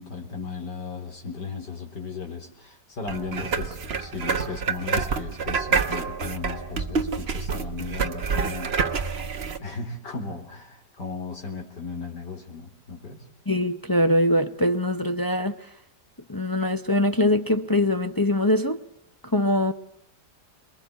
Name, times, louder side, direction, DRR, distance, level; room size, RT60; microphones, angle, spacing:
voice 1, 0.0-8.8 9.6-13.3, left 4 dB, 80° left, 4.3 m, -36 dB
sound 1, 3.1-9.6, right 5 dB, 40° right, 1.4 m, -27 dB
voice 2, 13.5-15.6 16.3-18.8 19.2-19.7, left 1 dB, 20° left, 0.6 m, -22 dB
27.5 x 21.5 x 8.1 m
omnidirectional pair, 1.8 m